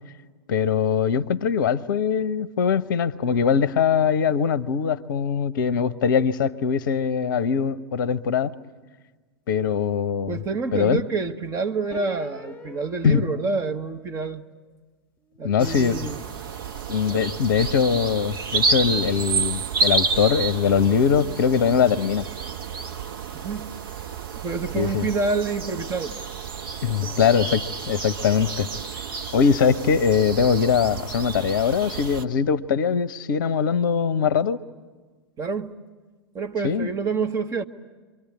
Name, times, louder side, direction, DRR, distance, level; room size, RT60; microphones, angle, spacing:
voice 1, 0.5-8.5 9.5-10.4 10.7-11.0 13.0-13.3 15.4-16.0 16.9-22.3 24.7-25.1 26.8-29.0 29.3-34.6 36.6-36.9, left 7 dB, 55° left, 17 dB, 0.8 m, -22 dB
voice 2, 10.3-14.5 15.4-16.2 17.1-17.2 23.3-23.7 24.4-26.2 26.8-27.3 35.4-35.7 36.3-37.6, right 4 dB, 25° right, 5 dB, 1.2 m, -28 dB
sound 1, 11.9-14.6 15.2-17.7, left 3 dB, 10° left, 3.4 m, -47 dB
sound 2, 15.6-32.2, right 4 dB, 60° right, 1.4 m, -30 dB
28.5 x 23.5 x 8.8 m, 1.3 s
figure-of-eight pair, 95°, 13 cm